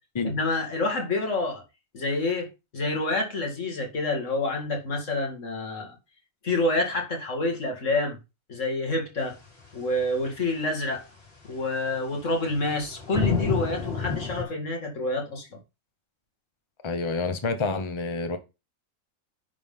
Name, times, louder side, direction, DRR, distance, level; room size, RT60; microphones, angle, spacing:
voice 1, 0.2-1.6 1.9-2.5 2.7-6.0 6.4-8.2 8.5-9.4 9.7-11.0 11.5-15.6, left 2 dB, 65° left, 2.4 m, -28 dB
sound 1, 10.0-10.1 10.3-10.4 11.9-14.4, left 6 dB, 45° left, 3.2 m, -29 dB
voice 2, 16.8-18.4, left 3 dB, 25° left, 0.9 m, -28 dB
10.0 x 3.9 x 5.4 m
omnidirectional pair, 1.4 m